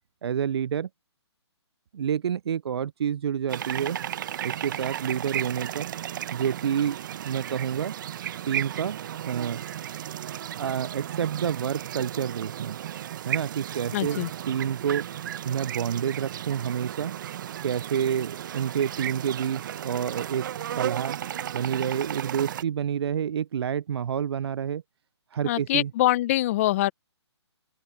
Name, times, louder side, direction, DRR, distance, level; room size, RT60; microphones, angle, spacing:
voice 1, 0.2-0.9 1.9-4.0 4.4-5.9 6.3-7.0 7.3-8.0 8.5-9.0 9.3-9.6 10.6-12.8 13.3-15.1 15.4-17.1 17.6-20.5 20.8-21.2 21.5-24.8 25.3-25.9, right 8 dB, 60° right, 0.4 m, -28 dB
sound 1, 3.5-22.6, right 11 dB, 45° right, 1.2 m, -34 dB
voice 2, 13.9-14.3 25.4-26.9, left 15 dB, 30° left, 0.7 m, -24 dB
open air
hypercardioid pair, 145°, 15 cm